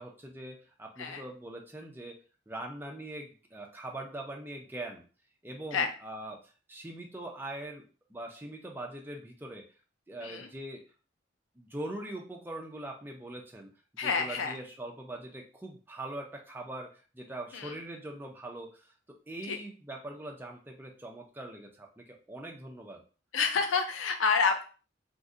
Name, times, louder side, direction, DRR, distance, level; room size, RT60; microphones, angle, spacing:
voice 1, 0.0-2.2 2.5-5.0 5.4-7.8 8.1-9.7 10.1-10.8 11.6-18.9 19.3-23.0, right 1 dB, 10° right, 1 dB, 0.4 m, -42 dB
voice 2, 14.0-14.6 17.5-17.8 19.4-19.6 23.3-24.6, left 5 dB, 80° left, 6 dB, 0.5 m, -28 dB
2.6 x 2.1 x 3.6 m, 0.36 s
head